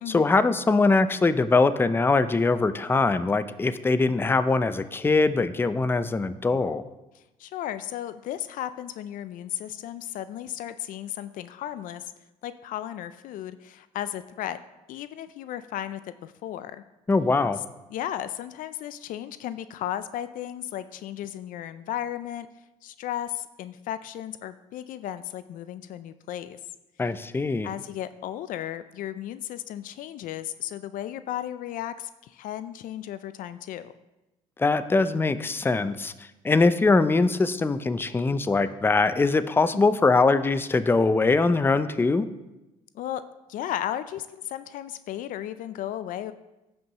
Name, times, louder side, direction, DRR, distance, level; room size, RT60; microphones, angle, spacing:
voice 1, 0.1-6.8 17.1-17.6 27.0-27.7 34.6-36.1 36.4-42.3, left 3 dB, 15° left, 12 dB, 0.5 m, -22 dB
voice 2, 7.1-12.1 12.4-14.6 14.9-16.8 17.9-22.5 22.8-26.6 27.6-33.9 39.7-40.0 42.9-43.2 43.5-46.3, left 11 dB, 70° left, 13 dB, 0.4 m, -35 dB
15.0 x 5.5 x 2.9 m, 1.0 s
supercardioid pair, 75°, 14 cm